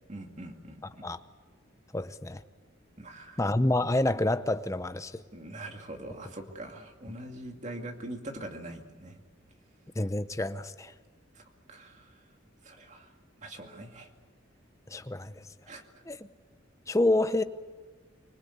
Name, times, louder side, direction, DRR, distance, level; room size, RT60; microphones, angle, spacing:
voice 1, 0.1-1.0 3.0-3.4 5.3-9.2 11.3-12.2 12.6-13.1 13.4-14.1 15.7-15.8, right 1 dB, 35° right, 2.4 m, -43 dB
voice 2, 1.9-2.4 3.4-5.2 10.0-10.9 14.9-15.3 16.1-16.2 16.9-17.4, left 1 dB, 15° left, 0.7 m, -28 dB
25.5 x 20.5 x 8.0 m
head